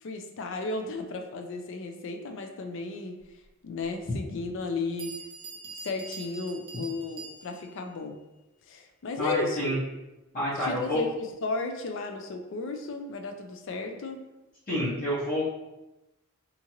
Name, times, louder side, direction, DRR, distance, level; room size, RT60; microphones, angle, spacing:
voice 1, 0.0-3.2 3.6-5.1 5.8-8.2 8.7-9.8 10.6-14.2, left 3 dB, 60° left, 5 dB, 0.4 m, -34 dB
Bell, 4.6-4.7 5.0-7.8, right 3 dB, 25° right, 0.4 m, -44 dB
voice 2, 9.2-9.8 10.3-11.0 14.7-15.5, left 1 dB, 45° left, -11 dB, 0.8 m, -28 dB
2.8 x 2.4 x 2.8 m, 0.97 s
head